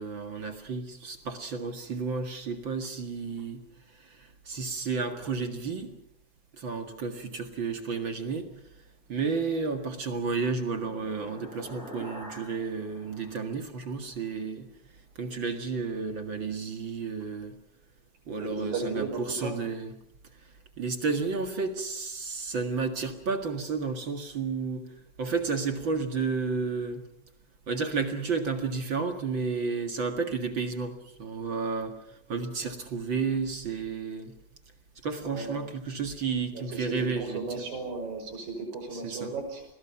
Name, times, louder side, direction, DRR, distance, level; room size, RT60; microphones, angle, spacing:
voice 1, 0.0-3.6 4.0-5.9 6.5-8.5 9.1-14.7 15.2-17.5 18.3-19.9 20.8-27.0 27.7-34.3 35.0-37.4 38.9-39.3, right 4 dB, 40° right, 5 dB, 2.1 m, -32 dB
sound 1, 9.6-14.3, equal, ahead, 7.8 m, -47 dB
voice 2, 18.4-19.6 35.3-35.6 36.5-39.7, right 3 dB, 75° right, 6 dB, 7.5 m, -35 dB
29.5 x 22.0 x 5.9 m, 0.73 s
omnidirectional pair, 4.0 m